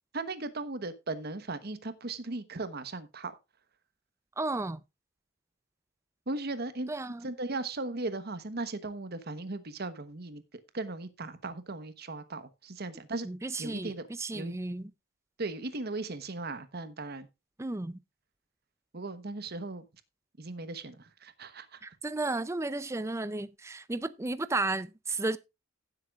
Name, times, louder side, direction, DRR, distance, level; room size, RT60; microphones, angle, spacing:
voice 1, 0.1-3.3 6.3-6.9 7.2-10.4 10.7-13.3 13.6-14.0 14.3-14.5 15.4-17.3 18.9-19.9 20.4-21.8, right 2 dB, 50° right, 1.1 m, -37 dB
voice 2, 4.4-4.8 6.9-7.3 13.2-14.9 17.6-18.0 21.8-25.4, right 2 dB, 15° right, 0.4 m, -33 dB
16.5 x 7.9 x 2.4 m
head